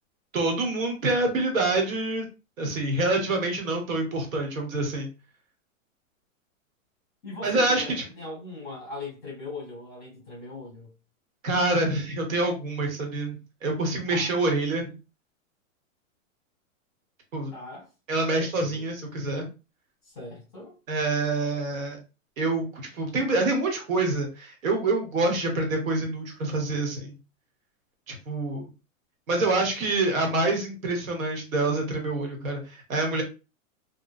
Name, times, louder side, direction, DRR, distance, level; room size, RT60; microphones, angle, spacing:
voice 1, 0.3-2.3 2.6-5.1 7.4-8.0 11.4-14.9 17.3-17.5 18.1-19.5 20.9-22.0 22.4-27.2 28.1-28.7 29.3-33.2, right 2 dB, 75° right, 1.3 m, -26 dB
voice 2, 7.2-10.9 14.1-14.3 17.5-17.9 18.5-18.9 20.0-20.8, left 2 dB, ahead, 0.4 m, -40 dB
2.9 x 2.2 x 2.4 m
supercardioid pair, 180°, 40 cm